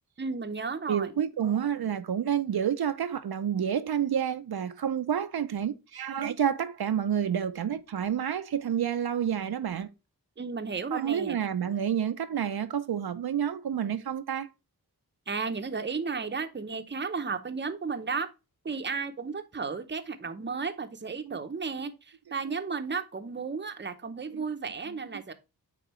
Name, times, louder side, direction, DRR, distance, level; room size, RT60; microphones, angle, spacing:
voice 1, 0.2-1.1 10.4-11.4 15.3-18.3 18.6-25.3, right 5 dB, 30° right, 0.7 m, -34 dB
voice 2, 0.9-9.9 10.9-14.5 21.3-21.4 24.3-24.4, right 9 dB, 75° right, 0.6 m, -29 dB
8.8 x 3.9 x 3.1 m
wide cardioid pair, 80°, 38 cm